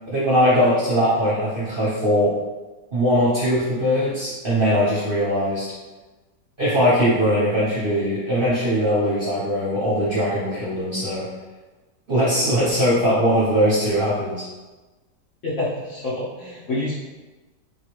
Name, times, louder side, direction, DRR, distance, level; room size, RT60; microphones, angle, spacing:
voice 1, 0.1-2.3 2.9-5.7 6.6-11.3 12.1-14.4, equal, 40° right, -9 dB, 0.9 m, -20 dB
voice 2, 15.4-16.9, left 2 dB, 55° left, -7 dB, 0.9 m, -27 dB
3.8 x 3.2 x 3.1 m, 1.2 s
omnidirectional pair, 1.9 m